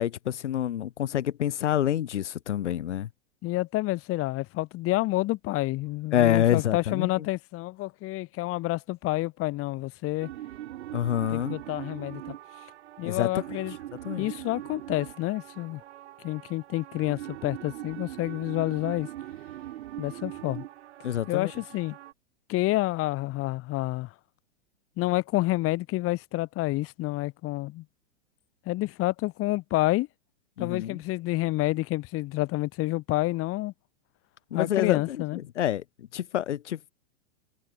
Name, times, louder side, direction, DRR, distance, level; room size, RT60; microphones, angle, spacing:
voice 1, 0.0-3.1 6.1-7.3 10.9-11.6 13.0-13.6 14.0-14.3 21.0-21.5 30.6-31.0 34.5-36.9, left 11 dB, 80° left, 2.1 m, -27 dB
voice 2, 3.4-10.3 11.3-12.3 13.0-13.7 14.2-15.8 16.2-19.1 20.0-20.6 21.3-22.0 22.5-24.1 25.0-27.8 28.6-30.1 30.6-33.7 34.5-35.4, left 18 dB, 40° left, 6.7 m, -29 dB
sound 1, 10.2-22.1, right 14 dB, 70° right, 6.3 m, -41 dB
hypercardioid pair, 120°, 35 cm